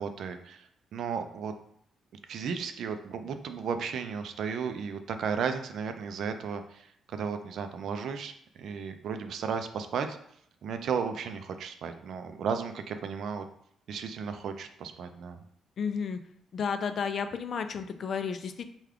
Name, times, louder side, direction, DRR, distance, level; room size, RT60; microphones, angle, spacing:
voice 1, 0.0-1.5 2.3-10.2 10.6-13.4 13.9-15.4, right 6 dB, 70° right, 8 dB, 0.4 m, -34 dB
voice 2, 15.8-16.2 16.5-18.7, left 6 dB, 55° left, 9 dB, 0.3 m, -32 dB
3.4 x 2.3 x 3.5 m, 0.70 s
cardioid pair, 90°, 0 cm